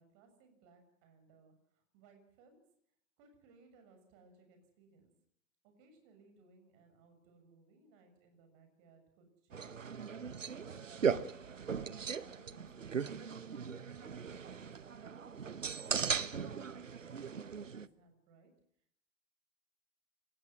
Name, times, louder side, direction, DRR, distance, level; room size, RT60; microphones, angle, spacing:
voice 1, 0.0-2.6 3.2-5.1 5.6-11.1 11.7-14.7 15.2-18.5, right 3 dB, 45° right, 6 dB, 7.1 m, -64 dB
sound 1, 9.5-17.9, right 6 dB, 85° right, 1.0 m, -38 dB
27.0 x 19.0 x 6.2 m, 0.68 s
figure-of-eight pair, 95°, 38 cm